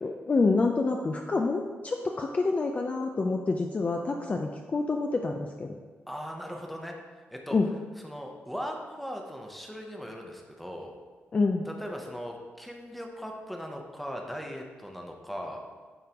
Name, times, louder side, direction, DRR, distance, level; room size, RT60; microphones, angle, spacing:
voice 1, 0.0-5.8 7.5-7.7 11.3-11.6, left 3 dB, 30° left, 3 dB, 0.4 m, -27 dB
voice 2, 6.1-6.9 7.3-7.6 8.0-10.9 11.7-15.6, equal, ahead, 1 dB, 0.8 m, -39 dB
9.0 x 3.7 x 2.9 m, 1.4 s
cardioid pair, 110°, 4 cm